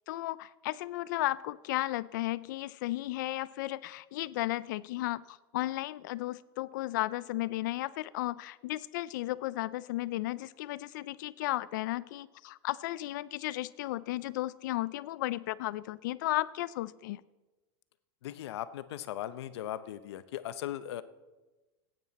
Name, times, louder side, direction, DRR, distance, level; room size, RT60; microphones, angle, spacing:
voice 1, 0.1-17.2, left 17 dB, 50° left, 18 dB, 0.3 m, -34 dB
voice 2, 18.2-21.0, left 12 dB, 85° left, 13 dB, 0.7 m, -38 dB
18.5 x 9.1 x 4.1 m, 1.1 s
supercardioid pair, 180°, 13 cm